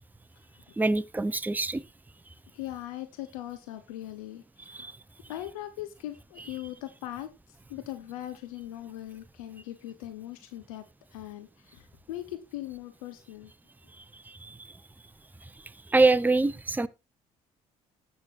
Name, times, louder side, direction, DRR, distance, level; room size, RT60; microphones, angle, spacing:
voice 1, 0.8-1.8 4.7-4.9 14.4-14.5 15.9-16.9, right 3 dB, 10° right, 0.7 m, -24 dB
voice 2, 2.5-4.9 5.3-10.8 11.1-13.5, left 14 dB, 80° left, 0.9 m, -40 dB
19.0 x 6.8 x 2.5 m
hypercardioid pair, 55°, 18 cm